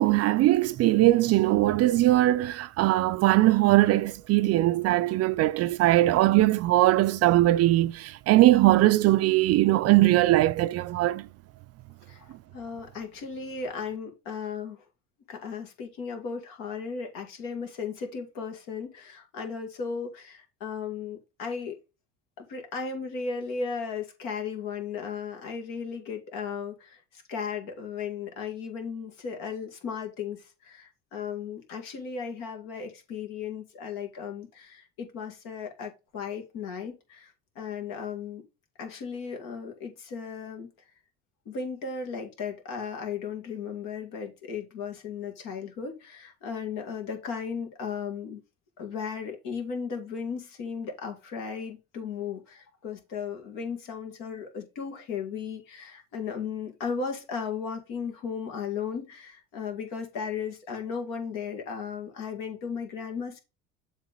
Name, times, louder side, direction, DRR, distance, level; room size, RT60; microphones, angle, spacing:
voice 1, 0.0-11.2, right 16 dB, 50° right, 0.4 m, -21 dB
voice 2, 12.5-14.8 15.3-21.8 22.4-38.4 38.8-40.7 41.5-48.4 48.8-63.4, left 6 dB, 70° left, 2.1 m, -36 dB
7.4 x 3.2 x 5.4 m
supercardioid pair, 90°, 34 cm